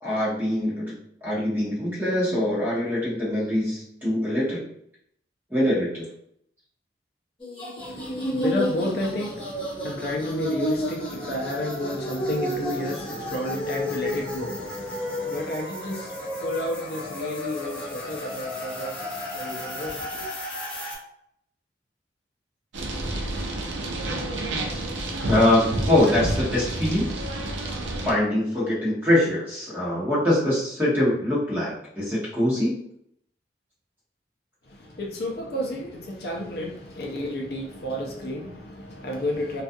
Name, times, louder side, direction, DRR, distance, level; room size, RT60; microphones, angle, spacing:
voice 1, 0.0-4.7 5.5-6.0 25.3-27.1 28.0-32.7, left 1 dB, 10° right, 0.9 m, -23 dB
sound 1, 7.4-21.0, left 1 dB, 25° left, 0.9 m, -32 dB
voice 2, 7.8-20.3 34.7-39.6, left 1 dB, 60° left, 0.5 m, -31 dB
sound 2, 22.7-28.1, right 1 dB, 85° right, 0.5 m, -29 dB
2.3 x 2.3 x 2.6 m
head